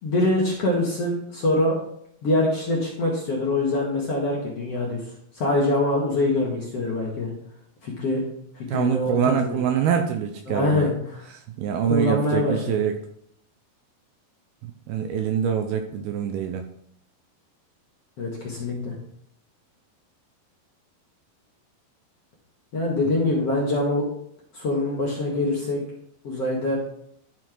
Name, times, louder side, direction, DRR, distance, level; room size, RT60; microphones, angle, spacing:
voice 1, 0.0-1.8 2.2-5.0 5.4-7.3 7.8-8.2 8.5-9.6 10.5-10.9 11.9-12.8 18.2-18.9 22.7-24.0 24.5-25.8 26.2-26.8, left 2 dB, 50° left, -3 dB, 2.1 m, -24 dB
voice 2, 8.7-10.9 11.3-13.0 14.6-16.7, right 8 dB, 80° right, 6 dB, 2.3 m, -25 dB
12.5 x 4.5 x 4.5 m, 0.69 s
omnidirectional pair, 4.8 m